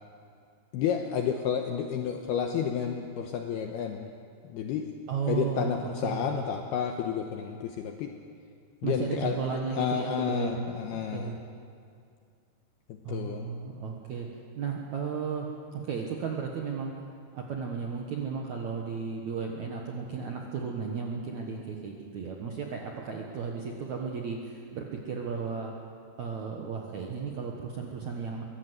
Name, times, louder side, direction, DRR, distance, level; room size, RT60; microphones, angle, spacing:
voice 1, 0.7-4.1 4.4-4.9 5.3-8.1 8.8-9.4 9.7-11.4 12.9-13.5, left 8 dB, 75° left, 4 dB, 2.4 m, -31 dB
voice 2, 5.1-6.4 8.8-11.4 13.0-14.3 14.5-16.9 17.3-25.7 26.2-28.4, right 5 dB, 85° right, 0 dB, 1.6 m, -34 dB
23.0 x 17.0 x 8.1 m, 2.4 s
omnidirectional pair, 5.7 m